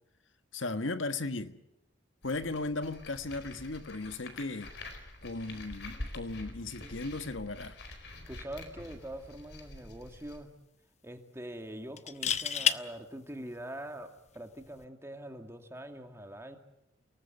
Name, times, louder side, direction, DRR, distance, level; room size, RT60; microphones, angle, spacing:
voice 1, 0.5-1.6 2.2-4.7 5.2-7.8, left 3 dB, 85° left, 1.4 m, -36 dB
sound 1, 2.2-10.4, left 2 dB, 60° left, 4.6 m, -46 dB
voice 2, 8.3-10.5 11.0-16.6, right 1 dB, 15° right, 2.2 m, -44 dB
sound 2, 9.1-9.4 9.7-9.8 12.0-12.8 14.6-14.8, left 7 dB, 35° left, 0.9 m, -29 dB
29.0 x 19.0 x 8.2 m
head